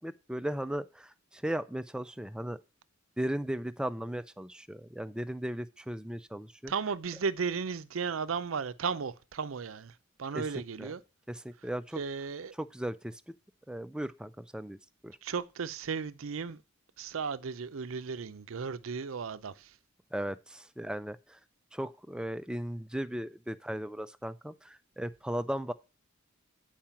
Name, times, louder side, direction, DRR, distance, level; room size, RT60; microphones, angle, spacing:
voice 1, 0.0-2.6 3.2-6.7 10.3-10.9 11.3-12.0 12.6-13.2 13.7-15.2 20.1-21.4 21.7-25.7, right 1 dB, 5° right, 0.4 m, -37 dB
voice 2, 6.7-11.0 12.0-12.5 15.2-16.6 17.0-19.8, right 5 dB, 75° right, 0.6 m, -35 dB
8.9 x 4.8 x 5.7 m
head